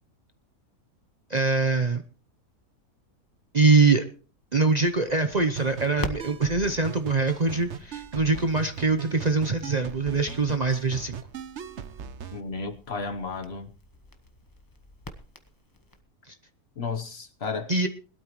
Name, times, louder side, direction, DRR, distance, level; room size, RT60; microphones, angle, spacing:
voice 1, 1.3-2.0 3.5-4.0 4.5-11.2 16.3-16.4 17.7-17.9, right 3 dB, 35° right, 0.8 m, -23 dB
Crackle, 4.8-16.0, left 1 dB, 15° left, 1.1 m, -44 dB
sound 1, 5.6-12.4, right 7 dB, 55° right, 1.1 m, -39 dB
voice 2, 12.3-13.7 16.8-17.7, left 4 dB, 50° left, 1.1 m, -33 dB
21.5 x 12.5 x 3.1 m
omnidirectional pair, 1.6 m